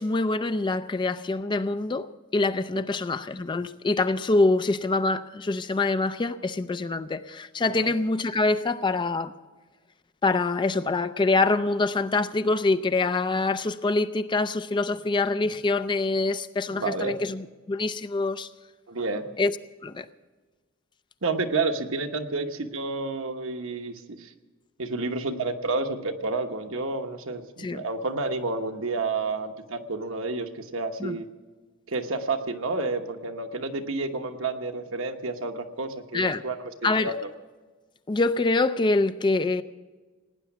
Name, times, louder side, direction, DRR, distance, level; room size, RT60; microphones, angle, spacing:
voice 1, 0.0-9.3 10.2-18.5 19.4-19.6 19.8-20.1 27.6-27.8 31.0-31.2 36.1-36.4 36.8-37.1 38.1-39.6, left 3 dB, 20° left, 0.4 m, -25 dB
voice 2, 16.7-17.2 18.9-19.3 21.2-24.3 24.8-31.3 31.9-36.6 36.8-37.3, right 3 dB, 65° right, 1.1 m, -30 dB
18.0 x 9.7 x 7.2 m
head